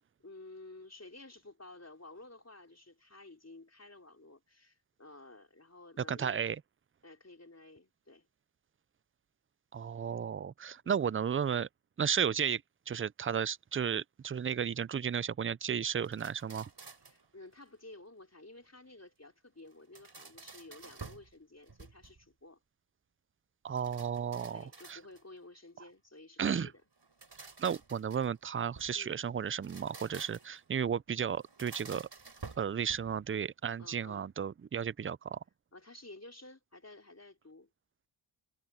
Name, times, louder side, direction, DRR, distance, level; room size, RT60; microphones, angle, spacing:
voice 1, 0.2-6.4 7.0-8.3 10.8-11.1 17.0-22.6 24.5-26.7 28.9-29.2 33.8-34.3 35.7-37.7, left 2 dB, 30° left, 4.2 m, -53 dB
voice 2, 6.1-6.6 9.7-11.7 12.0-16.7 23.6-25.0 26.4-26.7 27.4-32.1 32.6-35.4, right 7 dB, 30° right, 0.4 m, -34 dB
sound 1, 16.0-17.3 19.7-21.3 21.7-22.3 23.8-25.4 27.0-29.0 29.5-30.6 31.4-33.3, right 4 dB, 55° right, 5.3 m, -51 dB
cardioid pair, 55°, 50 cm